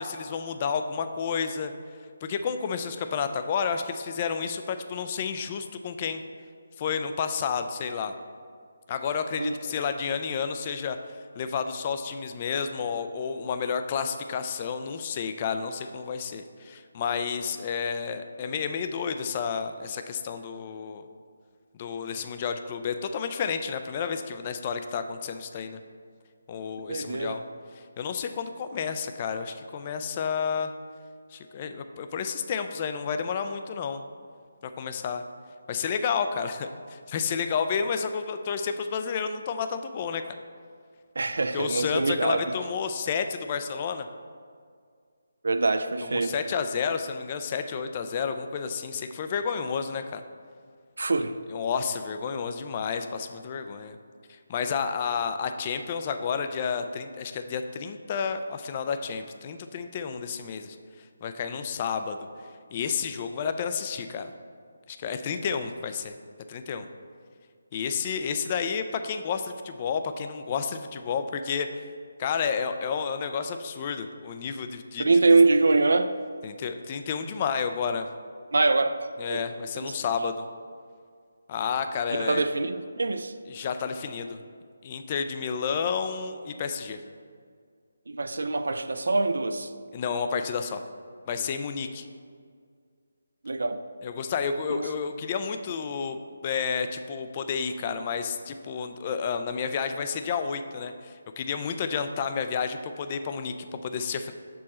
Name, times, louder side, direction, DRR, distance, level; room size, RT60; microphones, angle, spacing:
voice 1, 0.0-1.7 2.2-6.2 6.8-8.1 8.9-11.0 11.4-21.1 21.7-25.8 26.5-27.4 28.0-30.7 31.3-34.0 34.6-35.2 35.7-40.2 41.5-44.1 46.0-50.2 51.5-54.0 54.3-60.8 61.2-62.2 62.7-64.3 64.9-66.2 66.5-66.9 67.7-71.8 72.2-75.1 76.4-78.1 79.2-80.4 81.5-82.5 83.5-84.4 84.8-87.0 89.9-90.8 91.3-92.1 94.0-96.2 96.4-104.3, left 6 dB, 30° left, 8 dB, 0.3 m, -31 dB
voice 2, 26.9-27.4 41.2-42.5 45.4-46.4 51.0-51.3 75.0-76.1 78.5-79.4 79.7-80.0 82.2-83.3 88.1-89.7 93.4-93.8 94.7-94.9, right 3 dB, 75° right, 10 dB, 0.4 m, -24 dB
6.1 x 4.5 x 4.2 m, 2.1 s
figure-of-eight pair, 165°, 0 cm